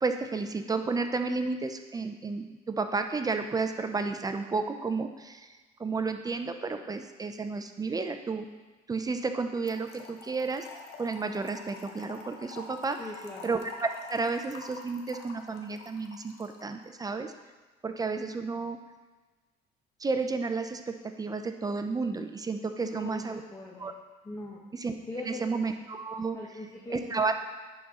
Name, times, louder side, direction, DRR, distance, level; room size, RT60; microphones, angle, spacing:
voice 1, 0.0-5.5 5.8-8.5 8.9-10.7 11.0-13.0 13.4-17.3 17.8-18.8 20.0-23.4 23.8-23.9 24.7-24.9 25.3-26.4 26.9-27.3, right 4 dB, 20° right, 7 dB, 0.5 m, -32 dB
Trickle dribble / Fill (with liquid), 9.7-16.8, left 4 dB, 90° left, 0.9 m, -47 dB
voice 2, 13.0-13.5 22.8-23.9 24.2-24.6 25.1-25.6 26.3-27.3, left 2 dB, 20° left, -3 dB, 0.9 m, -41 dB
10.5 x 4.2 x 3.7 m, 1.3 s
cardioid pair, 110°, 17 cm